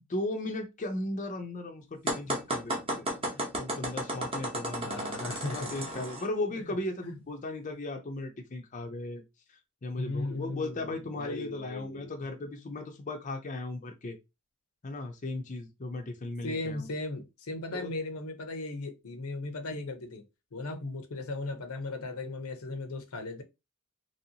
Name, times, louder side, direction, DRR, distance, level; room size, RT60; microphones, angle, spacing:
voice 1, 0.1-9.2 9.5-14.2 14.8-16.9 17.7-17.9, left 2 dB, 35° left, 0.5 m, -37 dB
sound 1, 2.1-6.3, right 1 dB, 25° right, 0.9 m, -33 dB
voice 2, 4.8-6.0 7.0-7.2 10.0-12.1 16.4-20.2 20.5-23.4, left 2 dB, 80° left, 0.7 m, -37 dB
3.0 x 2.7 x 2.8 m
head